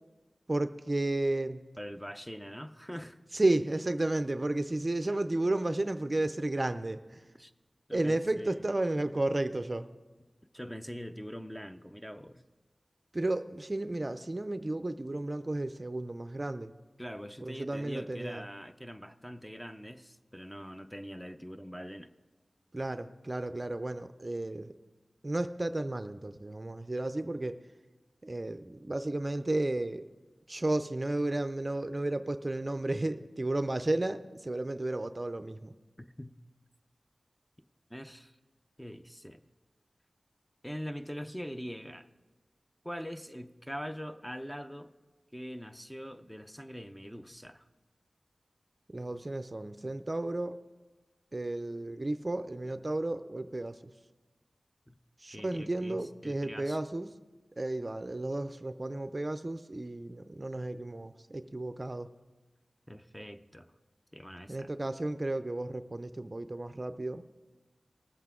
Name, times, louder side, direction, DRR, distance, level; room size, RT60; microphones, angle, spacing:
voice 1, 0.5-1.6 3.3-7.2 7.9-9.9 13.1-16.7 17.4-18.4 22.7-24.7 25.2-27.6 28.2-30.1 30.5-35.7 48.9-50.6 51.3-53.8 55.2-57.1 57.6-62.1 64.5-67.2, right 2 dB, 35° right, 10 dB, 0.5 m, -33 dB
voice 2, 1.8-3.2 7.4-7.5 7.9-8.6 10.5-12.4 17.0-22.1 36.0-36.4 37.9-38.4 38.8-39.4 40.6-42.1 42.8-44.9 45.3-47.6 54.9-55.0 55.3-56.8 62.9-63.7 64.1-64.7, equal, 5° left, 8 dB, 0.6 m, -43 dB
20.0 x 7.9 x 3.7 m, 1.2 s
wide cardioid pair, 50°, 0 cm